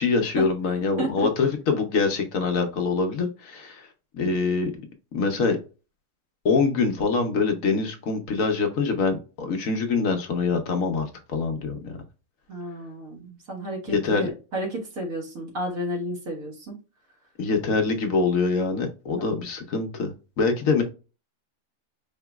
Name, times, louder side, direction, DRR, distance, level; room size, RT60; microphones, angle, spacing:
voice 1, 0.0-3.9 4.1-4.7 5.1-5.6 6.4-11.9 13.9-14.3 17.4-20.8, left 4 dB, 70° left, 5 dB, 1.2 m, -24 dB
voice 2, 12.5-16.8 19.2-19.3, right 1 dB, 75° right, 0 dB, 2.0 m, -32 dB
4.9 x 2.9 x 2.3 m, 0.33 s
omnidirectional pair, 1.5 m